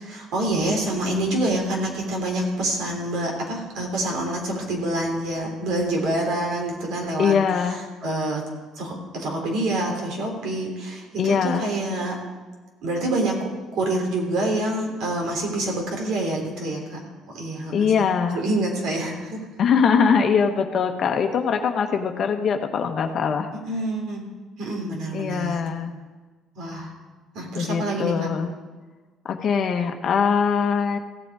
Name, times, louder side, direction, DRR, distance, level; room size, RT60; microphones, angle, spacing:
voice 1, 0.0-7.4 7.7-8.4 8.7-12.1 12.8-13.3 13.7-17.0 17.3-17.9 18.3-19.4 23.6-24.2 24.6-25.6 26.5-26.9 27.3-28.3, right 1 dB, 70° right, 0 dB, 3.5 m, -26 dB
voice 2, 7.2-7.8 11.2-11.7 17.7-18.4 19.6-23.5 25.1-25.9 27.5-28.5 29.2-31.0, left 6 dB, 50° left, 5 dB, 1.1 m, -22 dB
16.0 x 7.8 x 4.8 m, 1.3 s
cardioid pair, 95°, 0 cm